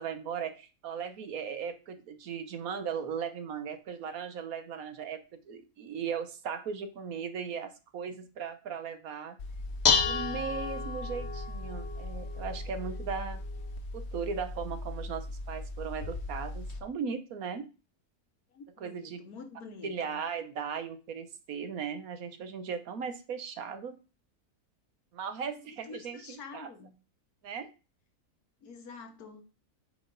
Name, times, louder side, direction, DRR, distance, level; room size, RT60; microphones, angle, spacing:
voice 1, 0.0-5.2 5.5-9.4 10.0-13.4 13.9-17.7 18.8-19.2 19.8-24.0 25.1-26.7 27.4-27.7, right 6 dB, 70° right, 9 dB, 1.3 m, -37 dB
Dishes pots and pans, 9.4-16.8, left 4 dB, 50° left, 1.1 m, -33 dB
voice 2, 18.5-20.2 25.6-26.9 28.6-29.4, left 4 dB, 80° left, 6 dB, 1.7 m, -47 dB
9.2 x 4.2 x 3.9 m, 0.33 s
omnidirectional pair, 1.6 m